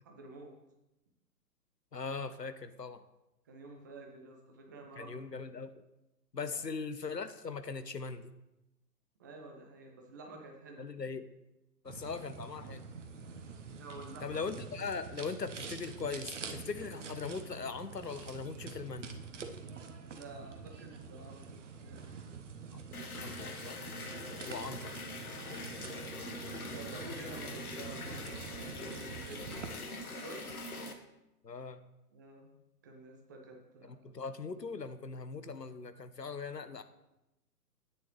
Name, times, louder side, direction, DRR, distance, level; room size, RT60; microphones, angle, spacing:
voice 1, 0.0-0.5 3.5-5.2 6.5-6.6 9.2-10.9 13.8-14.4 20.1-22.3 24.1-24.5 25.7-26.1 26.5-29.5 30.0-30.5 32.1-32.5 32.8-34.0, right 2 dB, 15° right, 2 dB, 0.6 m, -50 dB
voice 2, 1.9-3.0 5.0-5.7 6.3-8.3 10.8-11.3 11.8-12.8 14.2-19.2 23.2-23.8 24.4-24.8 31.4-31.8 33.8-36.8, left 5 dB, 85° left, 11 dB, 0.9 m, -40 dB
preparing fire at the picnic, 11.9-29.7, right 5 dB, 50° right, 1.0 m, -46 dB
sound 1, 22.9-30.9, left 2 dB, 65° left, 1.4 m, -43 dB
10.5 x 9.3 x 3.2 m, 0.93 s
figure-of-eight pair, 125°, 48 cm